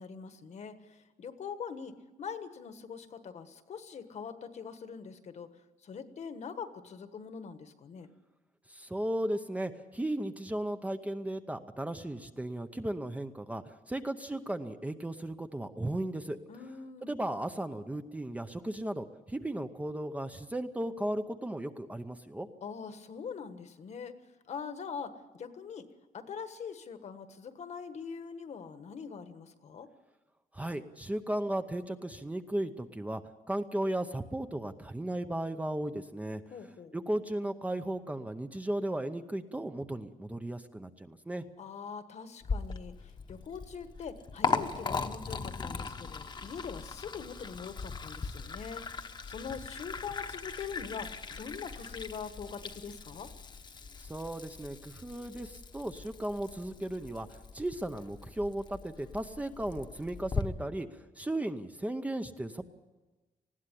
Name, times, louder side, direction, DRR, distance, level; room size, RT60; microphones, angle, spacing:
voice 1, 0.0-5.5 5.8-8.1 16.5-17.1 22.6-24.1 24.5-25.9 26.1-29.9 36.5-36.9 41.6-53.3, left 6 dB, 55° left, 10 dB, 1.4 m, -43 dB
voice 2, 8.7-16.4 17.0-22.5 30.5-33.2 33.5-36.4 36.9-41.4 54.0-62.7, right 1 dB, 10° right, 8 dB, 0.7 m, -36 dB
Liquid, 42.4-60.4, left 5 dB, 30° left, 1.0 m, -39 dB
19.5 x 15.5 x 9.9 m, 1.2 s
wide cardioid pair, 160°, 14 cm